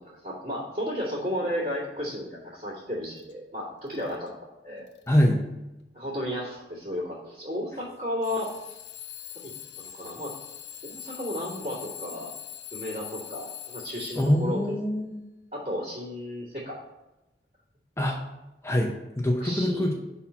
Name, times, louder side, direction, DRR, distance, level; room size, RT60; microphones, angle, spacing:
voice 1, 0.0-4.9 5.9-8.8 9.3-9.5 9.8-10.3 10.8-12.3 12.7-14.6 15.5-16.8 19.4-19.9, equal, 45° right, -11 dB, 2.2 m, -33 dB
Alarm / Clock, 3.2-3.3 3.9-4.3 4.9-5.3 6.1-6.2 8.2-14.6, left 11 dB, 70° left, 0.6 m, -42 dB
voice 2, 5.1-5.4 14.1-15.2 18.0-18.2 18.6-19.9, left 1 dB, 15° left, 1 dB, 0.6 m, -24 dB
5.6 x 4.2 x 5.7 m, 0.97 s
head